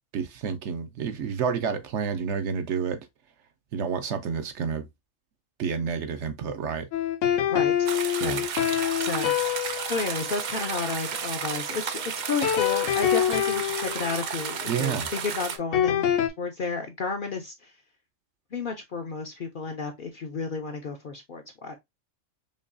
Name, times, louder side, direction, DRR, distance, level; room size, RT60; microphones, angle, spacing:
voice 1, 0.1-3.0 3.7-4.9 5.6-6.9 8.2-8.4 14.7-15.1, right 6 dB, 70° right, 0.9 m, -29 dB
sound 1, 6.9-11.8 12.4-16.3, left 10 dB, 75° left, 0.9 m, -27 dB
voice 2, 7.5-7.9 8.2-8.5 9.0-9.3 9.9-17.7 18.5-21.8, left 4 dB, 55° left, 0.6 m, -32 dB
sound 2, 7.9-15.6, right 7 dB, 85° right, 0.4 m, -33 dB
5.2 x 2.3 x 2.5 m
omnidirectional pair, 1.4 m